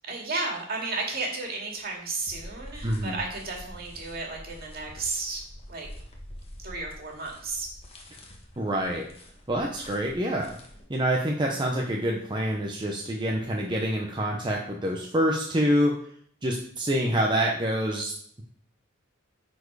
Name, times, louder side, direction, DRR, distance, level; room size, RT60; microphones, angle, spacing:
voice 1, 0.0-5.4 5.7-5.9 6.6-7.7, right 3 dB, 50° right, 0 dB, 2.2 m, -33 dB
sound 1, 1.4-1.5 1.7-10.8, equal, 30° left, 1.3 m, -46 dB
voice 2, 2.8-3.2 8.6-9.1 9.5-10.6 10.9-16.0 16.4-18.1, equal, 25° right, 0 dB, 0.8 m, -26 dB
9.7 x 4.5 x 4.8 m, 0.63 s
head